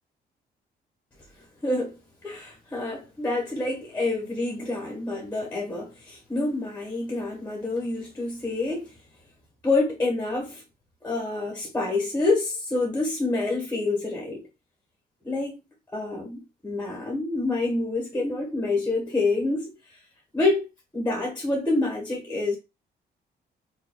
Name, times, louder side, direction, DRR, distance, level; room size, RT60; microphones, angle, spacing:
voice 1, 1.6-8.9 9.6-10.6 11.0-14.4 15.2-15.6 15.9-20.0 20.3-20.7 20.9-22.6, left 2 dB, 10° left, 1.4 m, -27 dB
4.8 x 2.7 x 2.3 m
cardioid pair, 140°, 18 cm